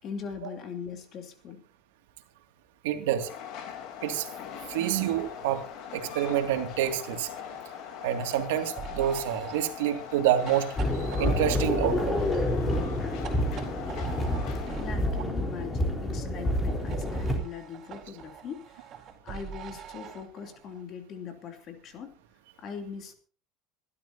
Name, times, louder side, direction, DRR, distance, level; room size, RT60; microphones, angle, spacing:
voice 1, 0.0-1.6 14.5-22.1 22.6-23.1, left 6 dB, 45° left, 5 dB, 2.8 m, -41 dB
voice 2, 2.8-3.3 4.0-4.3 4.7-5.6 5.9-7.3 8.0-12.1, right 11 dB, 90° right, 5 dB, 2.3 m, -28 dB
Train, 3.2-15.1, left 9 dB, 60° left, 3.4 m, -41 dB
sound 1, 5.0-15.3 16.8-20.8, right 7 dB, 45° right, 4.4 m, -46 dB
sound 2, 10.8-17.4, left 1 dB, 20° left, 3.9 m, -28 dB
26.5 x 12.5 x 2.8 m, 0.39 s
supercardioid pair, 120°, 0 cm